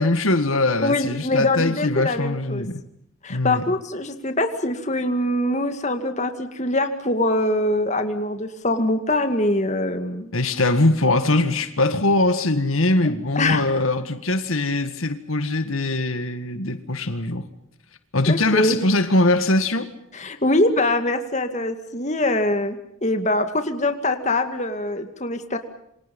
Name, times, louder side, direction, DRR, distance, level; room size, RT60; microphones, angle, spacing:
voice 1, 0.0-2.8 3.3-3.6 10.3-17.5 18.1-19.9, left 2 dB, 75° left, 1.9 m, -21 dB
voice 2, 0.8-2.7 3.2-10.3 13.4-13.7 18.3-18.8 20.1-22.8 23.0-25.6, left 1 dB, 35° left, 2.2 m, -23 dB
28.5 x 26.5 x 5.5 m
head